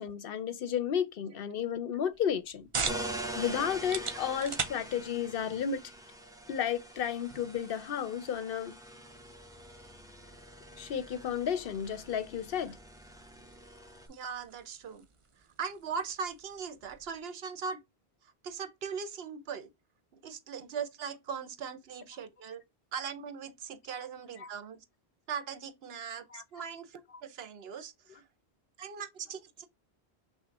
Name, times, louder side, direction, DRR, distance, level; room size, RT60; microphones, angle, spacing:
voice 1, 0.0-2.7 3.4-5.8 6.5-8.8 10.8-12.8 24.4-24.5 26.3-26.4 27.1-27.2 28.1-28.2, left 8 dB, 65° left, 0.7 m, -33 dB
sound 1, 2.1-17.2, right 5 dB, 40° right, 0.5 m, -44 dB
sound 2, 2.8-14.1, right 1 dB, 5° right, 0.7 m, -44 dB
voice 2, 14.1-15.1 15.6-17.8 18.4-19.7 20.1-22.6 22.9-24.8 25.3-28.2 28.8-29.7, right 6 dB, 70° right, 0.9 m, -40 dB
6.0 x 2.1 x 4.0 m
omnidirectional pair, 1.1 m